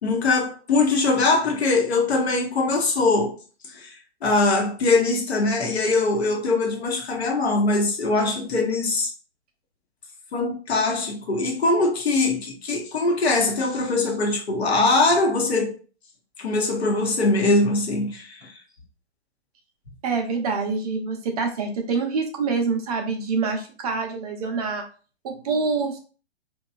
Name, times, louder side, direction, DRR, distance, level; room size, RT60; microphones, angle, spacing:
voice 1, 0.0-3.4 3.7-3.9 4.2-9.1 10.3-15.7 16.4-18.5, left 3 dB, 70° left, 0.9 m, -22 dB
voice 2, 20.0-24.8 25.2-26.0, right 4 dB, 35° right, 0.5 m, -26 dB
2.8 x 2.3 x 2.3 m
figure-of-eight pair, 120°, 33 cm